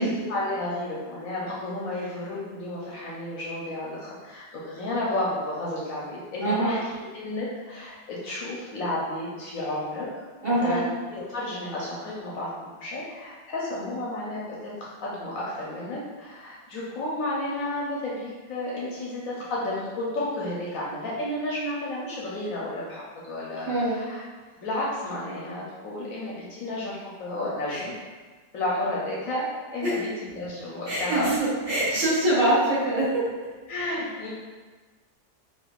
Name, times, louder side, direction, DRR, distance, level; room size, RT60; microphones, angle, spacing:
voice 1, 0.0-6.8 7.1-10.1 10.6-14.7 15.0-24.2 24.6-27.9 28.5-31.3 33.7-34.3, left 1 dB, 65° left, -6 dB, 0.9 m, -32 dB
voice 2, 6.4-6.8 10.4-10.8 23.6-24.0 27.7-27.8 29.8-30.0 30.9-33.1, right 1 dB, 55° right, -10 dB, 1.6 m, -24 dB
3.5 x 2.9 x 2.3 m, 1.4 s
omnidirectional pair, 1.7 m